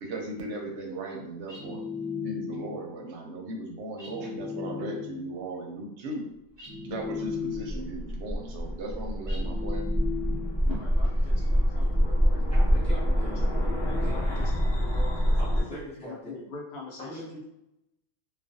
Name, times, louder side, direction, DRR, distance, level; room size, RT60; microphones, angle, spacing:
voice 1, 0.0-1.8 2.2-6.3 6.8-9.9, right 2 dB, 70° right, 1 dB, 0.8 m, -37 dB
sound 1, 1.5-2.8 4.0-5.3 6.6-7.9 9.3-10.6, left 6 dB, 25° right, 0.8 m, -36 dB
sound 2, 7.4-15.6, equal, 40° left, 0.3 m, -26 dB
voice 2, 10.7-14.4 14.8-17.2, left 3 dB, 60° left, -4 dB, 0.8 m, -43 dB
voice 3, 12.5-13.5 14.0-14.2 15.4-16.3 17.0-17.4, equal, 5° left, -8 dB, 0.7 m, -42 dB
2.3 x 2.3 x 2.6 m, 0.83 s
omnidirectional pair, 1.3 m